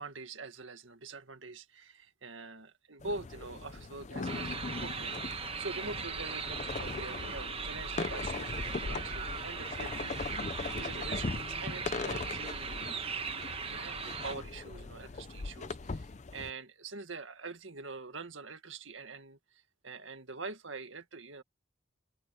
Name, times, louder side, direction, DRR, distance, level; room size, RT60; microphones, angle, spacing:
voice 1, 0.0-21.4, right 3 dB, 75° right, 1.9 m, -45 dB
sound 1, 3.0-16.5, left 3 dB, 35° left, 0.6 m, -40 dB
sound 2, 4.2-14.3, right 6 dB, 30° right, 1.1 m, -39 dB
head